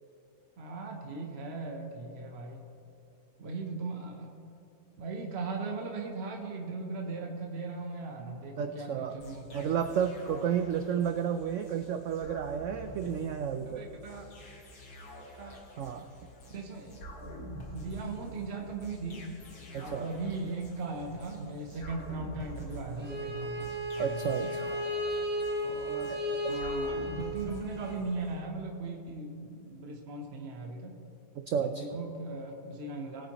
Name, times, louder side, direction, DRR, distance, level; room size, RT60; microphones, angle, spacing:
voice 1, 0.6-2.6 3.4-4.4 5.0-9.7 13.7-14.3 15.4-15.6 16.5-17.4 17.7-19.3 19.8-24.5 25.6-26.2 26.5-31.0 31.6-33.3, right 3 dB, 45° right, 1 dB, 1.1 m, -38 dB
voice 2, 8.6-9.2 9.5-13.8 15.8-16.1 19.7-20.1 21.4-21.5 22.9-23.4 24.0-24.6 31.5-31.9, right 8 dB, 80° right, 7 dB, 0.6 m, -32 dB
sound 1, 9.2-28.4, right 1 dB, 65° left, 2.1 m, -47 dB
Bowed string instrument, 23.0-28.0, left 1 dB, 5° right, 1.1 m, -34 dB
20.0 x 9.0 x 3.0 m, 2.7 s
omnidirectional pair, 1.8 m